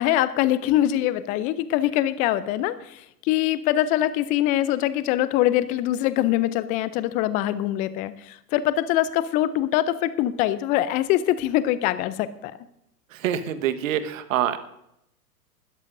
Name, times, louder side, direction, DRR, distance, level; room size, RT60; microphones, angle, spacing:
voice 1, 0.0-12.5, left 13 dB, 20° left, 16 dB, 0.4 m, -23 dB
voice 2, 13.1-14.6, right 10 dB, 60° right, 11 dB, 1.3 m, -25 dB
20.5 x 13.0 x 2.6 m, 0.80 s
hypercardioid pair, 105°, 46 cm